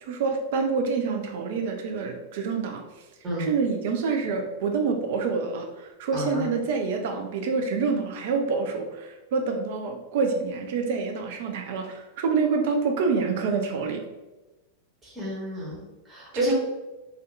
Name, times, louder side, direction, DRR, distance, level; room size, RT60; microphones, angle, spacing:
voice 1, 0.0-2.8 3.4-14.0 16.3-16.5, right 4 dB, 50° right, 4 dB, 0.5 m, -27 dB
voice 2, 6.1-6.5 15.0-16.5, equal, 20° right, -6 dB, 1.3 m, -32 dB
2.6 x 2.5 x 3.3 m, 1.1 s
figure-of-eight pair, 90°, 0 cm